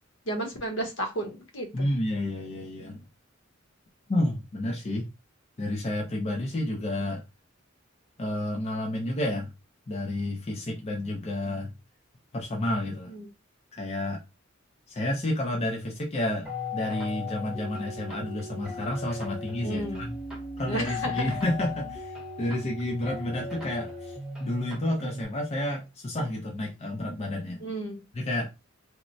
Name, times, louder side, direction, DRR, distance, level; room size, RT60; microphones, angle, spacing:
voice 1, 0.3-1.7 13.1-13.3 19.6-20.0 20.7-21.3 27.6-28.0, right 1 dB, 70° left, 0.9 m, -32 dB
voice 2, 1.7-3.0 4.1-5.1 5.6-7.2 8.2-9.5 9.9-11.7 12.3-13.1 13.7-14.2 14.9-20.2 20.6-27.6 28.1-28.5, left 1 dB, 30° left, 0.4 m, -30 dB
sound 1, 16.4-25.2, left 3 dB, 5° right, 0.8 m, -37 dB
3.0 x 2.1 x 2.6 m
head